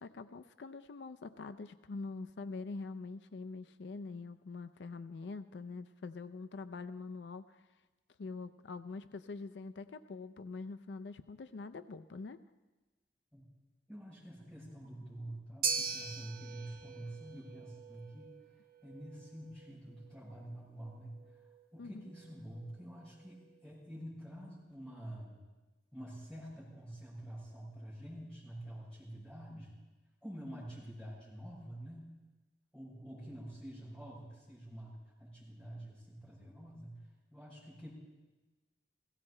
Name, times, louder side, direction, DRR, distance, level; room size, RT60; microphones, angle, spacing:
voice 1, 0.0-7.6 8.2-12.4 21.8-22.1, left 3 dB, 75° left, 12 dB, 0.4 m, -44 dB
voice 2, 13.9-18.4 18.8-25.4 25.9-29.7 30.2-32.1 32.7-37.9, right 1 dB, 5° left, -9 dB, 7.0 m, -48 dB
sound 1, 15.6-24.0, right 6 dB, 55° right, 0.9 m, -43 dB
16.5 x 16.0 x 4.4 m, 1.2 s
head